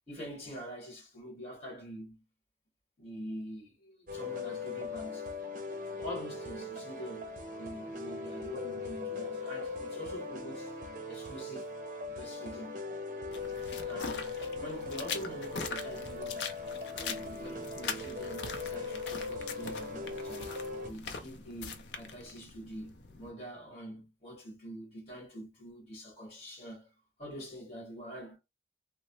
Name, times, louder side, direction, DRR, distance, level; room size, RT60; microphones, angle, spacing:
voice 1, 0.1-2.2 3.0-5.3 5.9-10.8 11.1-11.7 12.1-12.7 13.8-14.3 14.6-16.5 16.9-20.6 20.8-26.9 27.2-28.4, equal, 40° left, 1.5 m, -45 dB
sound 1, 4.1-20.9, left 3 dB, 45° right, 0.6 m, -40 dB
sound 2, 13.3-23.3, left 5 dB, 85° left, 0.5 m, -42 dB
3.1 x 2.0 x 2.8 m
head